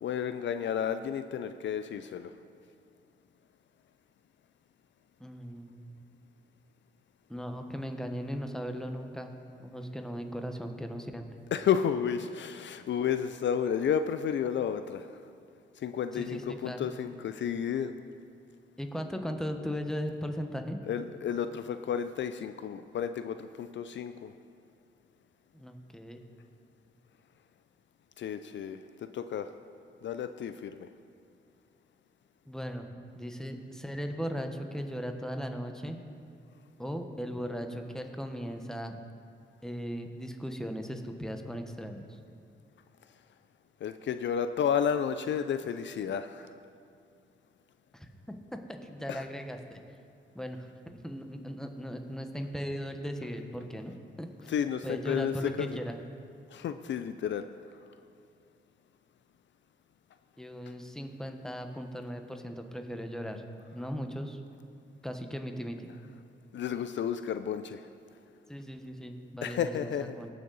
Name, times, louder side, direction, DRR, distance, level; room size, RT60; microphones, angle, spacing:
voice 1, 0.0-2.3 11.5-15.1 15.8-17.9 20.9-24.3 28.2-29.5 30.0-30.9 43.8-46.5 49.1-49.2 54.5-55.8 56.5-57.5 66.5-67.8 69.4-70.1, left 8 dB, 65° left, 10 dB, 0.4 m, -32 dB
voice 2, 5.2-5.9 7.3-9.3 9.6-11.3 16.1-16.9 18.8-20.8 25.5-26.2 32.4-36.0 36.8-39.0 39.6-42.1 47.9-48.1 48.7-49.8 50.3-50.7 51.0-54.5 54.8-56.0 60.4-63.4 63.7-64.4 65.0-65.8 68.5-70.3, equal, 5° left, 5 dB, 1.1 m, -38 dB
17.5 x 6.6 x 4.0 m, 2.3 s
cardioid pair, 65°, 20 cm